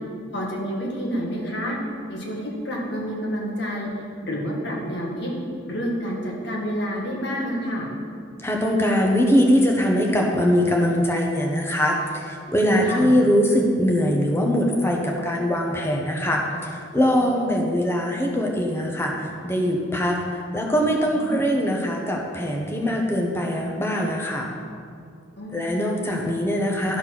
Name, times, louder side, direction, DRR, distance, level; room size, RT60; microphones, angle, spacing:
voice 1, 0.3-1.8 2.1-3.9 4.2-5.3 5.6-7.9 12.8-13.1 17.2-17.3 21.1-21.4 25.4-26.3, equal, 60° left, -2 dB, 1.8 m, -29 dB
voice 2, 8.4-24.5 25.5-27.0, equal, 10° left, -1 dB, 1.0 m, -22 dB
11.5 x 4.4 x 6.0 m, 2.3 s
head